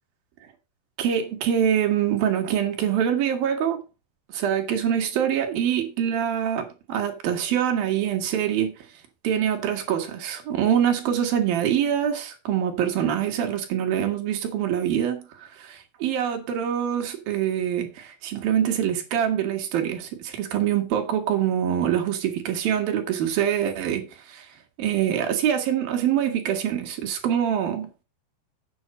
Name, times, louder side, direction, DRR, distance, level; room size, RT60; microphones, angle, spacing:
voice 1, 1.0-3.8 4.3-8.7 9.2-24.5 24.8-28.0, right 9 dB, 60° right, 2.9 m, -25 dB
8.0 x 7.9 x 5.2 m
omnidirectional pair, 5.3 m